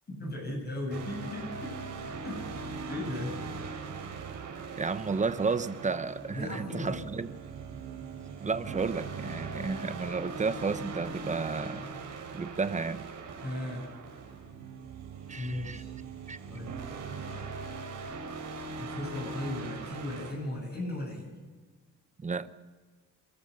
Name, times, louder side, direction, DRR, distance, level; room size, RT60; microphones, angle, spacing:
voice 1, 0.1-1.8 2.2-3.4 6.3-7.0 9.2-9.4 11.8-11.9 13.4-13.9 15.4-16.0 16.4-16.7 17.3-17.5 18.8-21.3, left 1 dB, 30° left, -1 dB, 8.0 m, -37 dB
sound 1, 0.9-20.3, right 4 dB, 65° right, 5.2 m, -41 dB
Bowed string instrument, 4.3-12.6, right 5 dB, 85° right, 2.8 m, -48 dB
voice 2, 4.8-7.3 8.4-11.9 12.3-13.1 15.3-15.8 16.3-16.4 22.2-22.5, right 4 dB, 25° right, 13 dB, 0.9 m, -32 dB
27.0 x 14.0 x 6.8 m, 1.4 s
cardioid pair, 125°, 32 cm